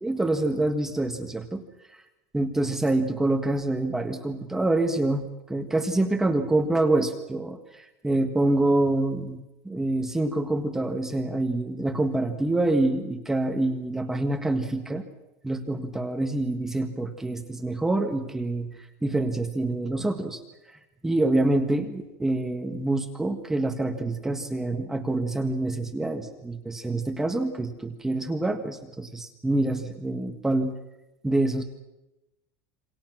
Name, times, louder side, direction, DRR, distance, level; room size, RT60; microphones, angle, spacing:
voice 1, 0.0-1.6 2.3-9.4 9.6-15.0 15.4-18.7 19.0-20.4 21.0-30.7 31.2-31.6, right 2 dB, 5° right, 5 dB, 1.5 m, -26 dB
27.5 x 26.5 x 6.2 m, 0.97 s
cardioid pair, 175°, 8 cm